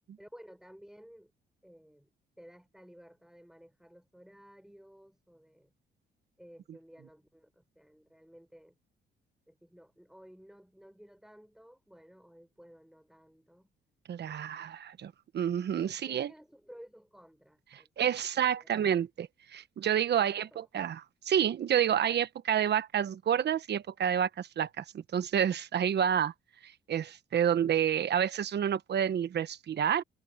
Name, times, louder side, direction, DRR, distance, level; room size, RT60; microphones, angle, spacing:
voice 1, 0.2-1.3 1.6-2.1 2.4-5.7 6.4-8.8 9.5-13.7 14.2-14.7 15.8-18.3 18.5-18.7 20.1-20.7, equal, ahead, 6.8 m, -55 dB
voice 2, 14.1-16.3 17.7-26.3 26.6-30.0, right 9 dB, 60° right, 1.2 m, -29 dB
cardioid pair, 90°, 20 cm